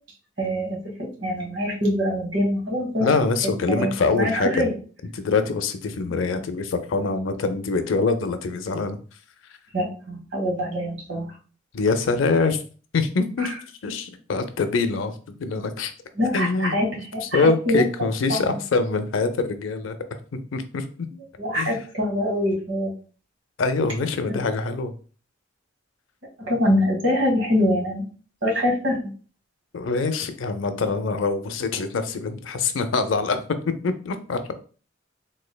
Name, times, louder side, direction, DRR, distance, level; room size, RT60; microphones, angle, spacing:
voice 1, 0.4-3.1 3.7-4.7 6.3-6.4 9.7-11.3 13.4-13.5 16.2-16.9 17.1-17.8 18.3-18.4 21.4-22.9 26.4-28.0 28.4-29.1, left 1 dB, 65° right, 0 dB, 1.4 m, -24 dB
voice 2, 3.0-4.7 5.1-9.0 11.7-12.6 12.9-15.9 16.3-20.0 20.5-21.1 21.5-21.8 23.6-24.9 29.7-34.5, left 4 dB, 90° left, 9 dB, 0.5 m, -24 dB
3.6 x 3.2 x 2.2 m, 0.39 s
head